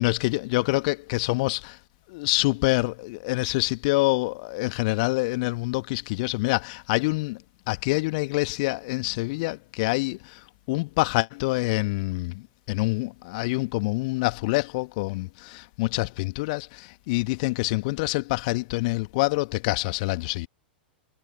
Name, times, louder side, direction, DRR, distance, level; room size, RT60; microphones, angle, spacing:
voice 1, 0.0-1.8 2.1-7.4 7.7-10.4 10.7-20.5, left 24 dB, 45° left, 2.0 m, -26 dB
figure-of-eight pair, 95°, 6 cm